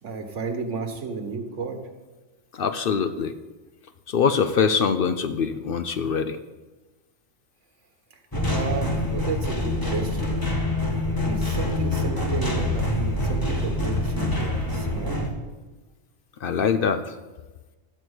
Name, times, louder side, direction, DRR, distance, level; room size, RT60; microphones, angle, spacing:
voice 1, 0.0-1.8 8.5-10.4 11.1-15.2, right 4 dB, 80° right, 5 dB, 1.6 m, -32 dB
voice 2, 2.5-3.3 4.1-6.4 16.4-17.2, left 6 dB, 60° left, 9 dB, 0.6 m, -23 dB
sound 1, 8.3-15.3, left 1 dB, 20° left, 1.3 m, -25 dB
12.0 x 4.5 x 8.0 m, 1.2 s
omnidirectional pair, 1.2 m